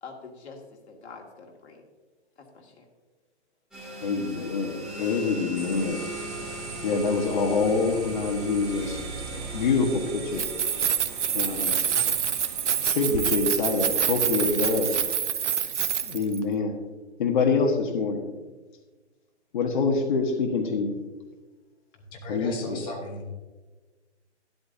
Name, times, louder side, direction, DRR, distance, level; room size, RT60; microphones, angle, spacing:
voice 1, 0.0-1.8 2.4-2.9, left 4 dB, 65° left, 1 dB, 2.2 m, -45 dB
sound 1, 3.7-13.9, right 1 dB, ahead, 2.6 m, -39 dB
voice 2, 4.0-6.0 6.8-9.0 9.5-10.4 11.3-11.7 12.8-15.0 16.0-16.7 17.2-18.2 19.5-21.0 22.3-22.8, left 4 dB, 45° left, 2 dB, 1.3 m, -25 dB
sound 2, 5.6-15.2, right 8 dB, 45° right, 0.6 m, -42 dB
Keys jangling, 10.3-16.4, right 8 dB, 85° right, 1.0 m, -26 dB
voice 3, 22.1-23.3, left 1 dB, 15° left, 1 dB, 1.1 m, -36 dB
12.0 x 11.5 x 2.7 m, 1.3 s
hypercardioid pair, 165°, 35 cm